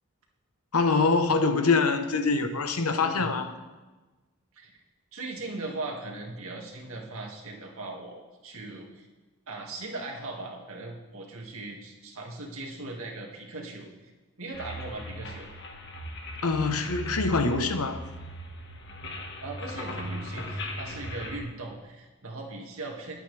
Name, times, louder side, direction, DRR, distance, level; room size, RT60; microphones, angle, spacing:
voice 1, 0.7-3.5 16.4-18.0, left 4 dB, 90° left, 8 dB, 1.0 m, -24 dB
voice 2, 3.0-3.3 4.5-4.7 5.1-9.1 9.5-13.9 14.4-15.5 19.4-23.1, right 2 dB, 70° right, 0 dB, 2.1 m, -39 dB
sound 1, 14.5-21.4, equal, 50° left, 1.6 m, -38 dB
20.5 x 8.7 x 3.4 m, 1.2 s
head